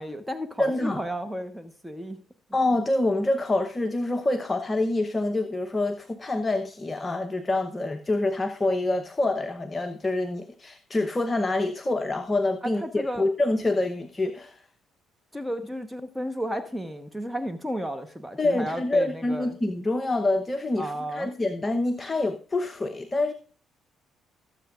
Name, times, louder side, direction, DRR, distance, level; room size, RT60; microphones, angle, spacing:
voice 1, 0.0-2.2 12.6-13.3 15.3-19.6 20.8-21.3, equal, 5° right, 1.1 m, -33 dB
voice 2, 0.6-1.0 2.5-14.6 18.4-23.3, left 2 dB, 25° left, 0.9 m, -26 dB
19.0 x 7.8 x 2.5 m
hypercardioid pair, 60°, 0 cm